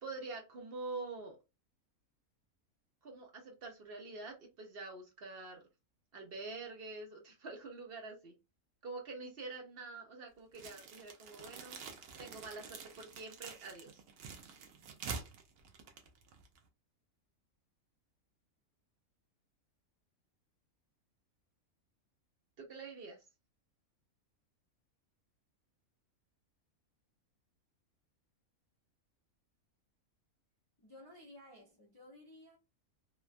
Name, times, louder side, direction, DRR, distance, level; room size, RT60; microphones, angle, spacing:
voice 1, 0.0-1.4 3.0-5.6 6.1-8.3 8.8-11.8 12.2-13.9 22.6-23.2, right 3 dB, 55° right, 0.7 m, -46 dB
sound 1, 10.5-16.7, right 5 dB, 85° right, 1.2 m, -48 dB
voice 2, 30.8-32.6, left 1 dB, 25° left, 0.5 m, -55 dB
2.9 x 2.2 x 2.5 m
omnidirectional pair, 1.5 m